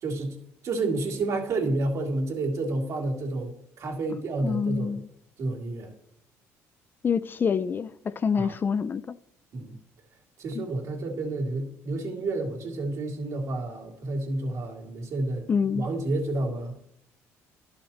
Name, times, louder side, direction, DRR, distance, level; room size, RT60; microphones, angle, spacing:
voice 1, 0.0-0.4 0.6-3.5 3.8-5.0 5.4-5.9 8.4-8.6 9.5-9.7 10.4-16.7, right 2 dB, 55° right, 2.6 m, -30 dB
voice 2, 4.4-5.1 7.0-9.2 10.5-10.7 15.5-15.9, left 6 dB, 35° left, 0.4 m, -27 dB
11.5 x 5.8 x 4.2 m
supercardioid pair, 90°, 6 cm